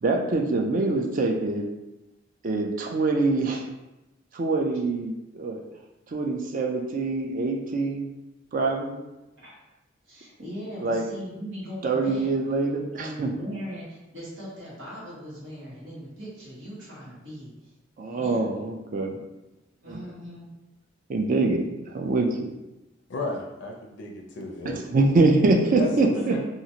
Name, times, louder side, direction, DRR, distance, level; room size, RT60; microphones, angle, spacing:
voice 1, 0.0-1.6 2.4-3.6 4.3-5.6 6.1-8.1 8.5-9.0 10.8-11.0 11.8-13.3 18.0-19.2 19.9-20.0 21.1-21.6 21.9-22.5 24.6-26.3, right 3 dB, 45° right, 2 dB, 0.4 m, -24 dB
voice 2, 10.0-12.3 12.9-17.7 18.1-18.4 19.8-20.5 26.1-26.4, equal, 80° right, -7 dB, 1.3 m, -39 dB
voice 3, 23.1-25.1 25.8-26.4, left 2 dB, 65° left, 0 dB, 0.4 m, -34 dB
2.9 x 2.4 x 2.7 m, 0.98 s
head